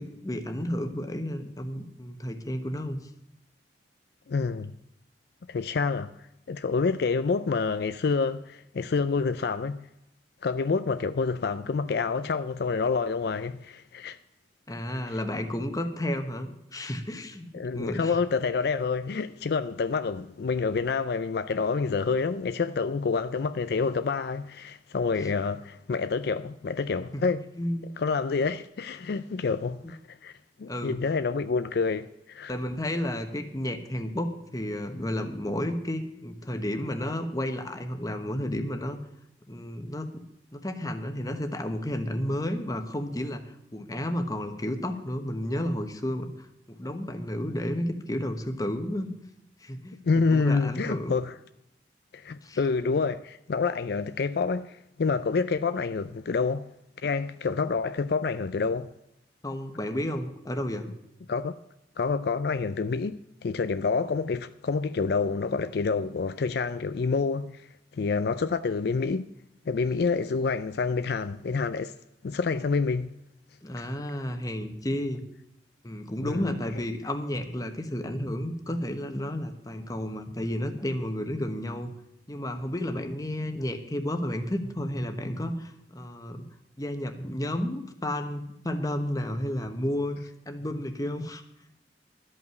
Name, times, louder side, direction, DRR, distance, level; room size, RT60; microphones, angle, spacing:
voice 1, 0.0-3.0 14.7-17.5 17.7-18.2 25.2-25.3 27.1-27.2 27.6-27.9 30.7-31.0 32.5-39.0 39.5-40.2 40.5-46.3 46.7-49.1 49.6-50.0 50.3-51.2 52.4-52.6 59.4-60.9 73.6-75.3 75.8-81.9 82.3-86.4 86.8-90.2 90.5-91.4, left 1 dB, 20° left, 1.1 m, -32 dB
voice 2, 4.3-4.7 5.5-6.1 6.5-9.9 10.4-14.2 15.1-15.2 17.5-27.4 28.0-30.3 30.6-32.5 50.0-51.4 52.1-56.7 57.0-58.9 61.3-61.5 62.0-67.7 67.9-69.3 69.7-71.9 72.2-73.1 76.2-76.6, left 4 dB, 60° left, 0.4 m, -28 dB
13.0 x 5.6 x 9.1 m
head